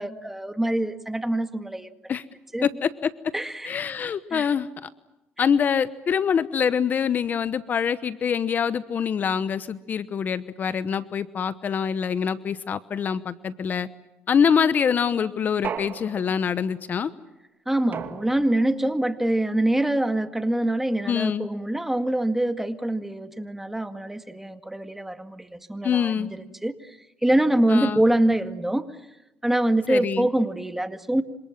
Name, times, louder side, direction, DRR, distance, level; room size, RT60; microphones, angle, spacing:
voice 1, 0.0-1.9 2.5-2.7 3.3-3.7 4.3-4.5 17.7-27.0 27.2-28.9 29.4-31.2, right 1 dB, 5° right, 8 dB, 2.0 m, -25 dB
voice 2, 2.6-3.1 3.6-4.9 5.4-13.9 14.3-17.1 21.1-21.5 25.8-26.3 27.7-28.0 29.9-30.3, left 7 dB, 45° left, 14 dB, 1.0 m, -25 dB
sound 1, 15.6-16.6 17.9-18.8, right 7 dB, 50° right, 2.5 m, -35 dB
27.0 x 26.5 x 7.4 m, 0.96 s
cardioid pair, 95°, 4 cm